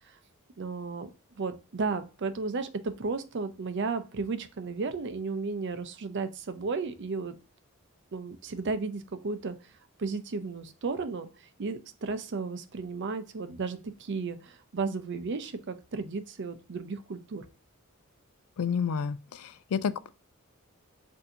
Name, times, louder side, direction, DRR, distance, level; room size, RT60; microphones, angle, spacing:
voice 1, 0.6-1.1 1.4-7.4 8.1-9.6 10.0-17.4, right 4 dB, 55° right, 0.6 m, -34 dB
voice 2, 18.6-20.1, left 6 dB, 85° left, 0.4 m, -30 dB
6.6 x 2.7 x 2.7 m
head